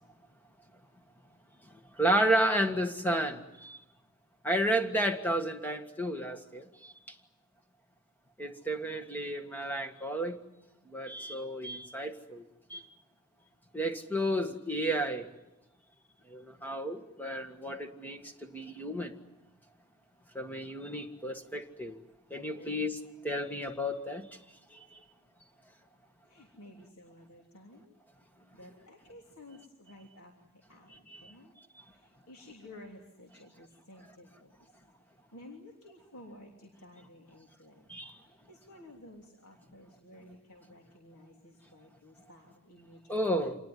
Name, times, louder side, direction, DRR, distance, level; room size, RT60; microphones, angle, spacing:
voice 1, 2.0-3.8 4.4-6.6 8.4-10.4 10.9-12.4 12.7-12.8 13.7-15.3 16.3-19.1 20.4-21.9 22.3-23.0 23.2-24.2 24.7-24.8 31.1-31.2 37.9-38.1 43.1-43.6, right 1 dB, 10° left, 6 dB, 1.8 m, -32 dB
voice 2, 26.2-28.0 28.5-31.5 31.8-34.7 35.3-37.8 38.3-43.0, left 1 dB, 85° left, 0 dB, 3.3 m, -53 dB
27.0 x 19.5 x 9.5 m, 0.96 s
head